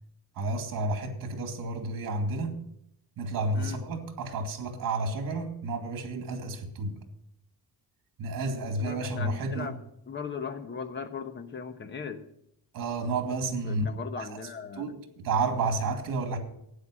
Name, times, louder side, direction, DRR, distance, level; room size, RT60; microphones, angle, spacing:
voice 1, 0.4-2.5 3.2-6.9 8.2-9.7 12.7-13.9 14.2-14.4 14.8-16.4, right 3 dB, 60° right, 2.3 m, -31 dB
voice 2, 8.8-9.8 10.1-12.2 13.6-14.9, left 6 dB, 30° left, 1.1 m, -38 dB
12.5 x 9.4 x 6.3 m
cardioid pair, 160°, 38 cm